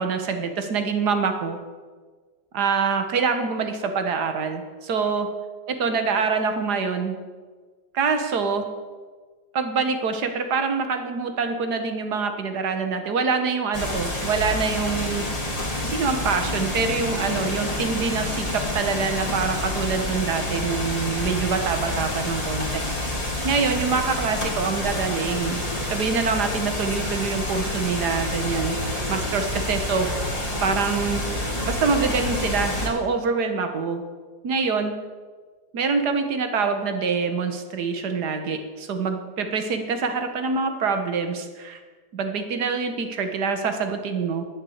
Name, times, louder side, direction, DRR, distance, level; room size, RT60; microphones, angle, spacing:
voice 1, 0.0-1.6 2.5-5.3 5.7-7.2 7.9-8.7 9.5-15.3 15.8-22.8 23.4-25.6 25.9-28.8 29.1-30.3 30.6-31.3 31.6-34.0 34.4-34.9 35.7-41.8 42.1-44.4, right 5 dB, 60° right, 7 dB, 1.8 m, -25 dB
sound 1, 13.7-32.9, left 1 dB, 20° left, 2.7 m, -28 dB
11.0 x 9.0 x 8.0 m, 1.4 s
omnidirectional pair, 2.0 m